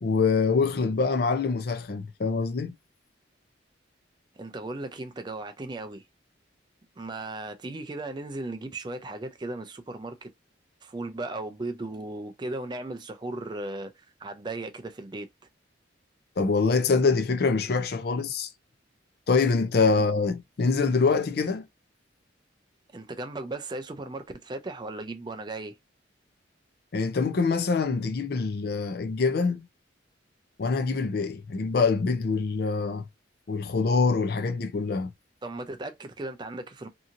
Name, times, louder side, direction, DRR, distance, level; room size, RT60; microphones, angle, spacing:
voice 1, 0.0-2.8 16.4-18.5 19.3-21.6 26.9-29.7 30.6-33.1 33.5-35.1, left 4 dB, 55° left, 0.4 m, -25 dB
voice 2, 4.4-6.0 7.0-10.3 10.8-15.3 20.0-20.1 22.9-25.8 35.4-36.9, right 2 dB, 25° right, 0.4 m, -36 dB
2.8 x 2.7 x 2.5 m
head